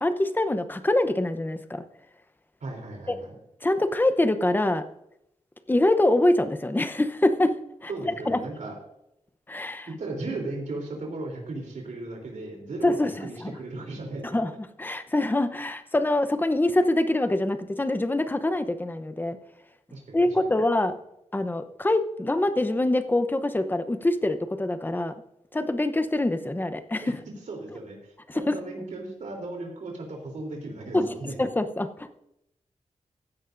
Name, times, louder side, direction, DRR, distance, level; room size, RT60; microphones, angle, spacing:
voice 1, 0.0-1.8 3.1-3.2 3.6-4.8 5.7-7.6 7.8-7.9 8.3-8.4 9.5-9.9 12.8-13.6 14.2-14.5 14.8-19.4 20.1-21.0 21.3-25.1 25.5-27.2 28.3-28.6 30.9-32.2, left 1 dB, 15° left, 10 dB, 0.8 m, -24 dB
voice 2, 2.6-3.4 7.9-8.8 9.8-14.4 19.9-20.5 27.0-27.1 27.5-31.4, right 2 dB, 85° right, 0 dB, 3.4 m, -36 dB
16.0 x 10.0 x 2.6 m, 0.80 s
wide cardioid pair, 140°, 12 cm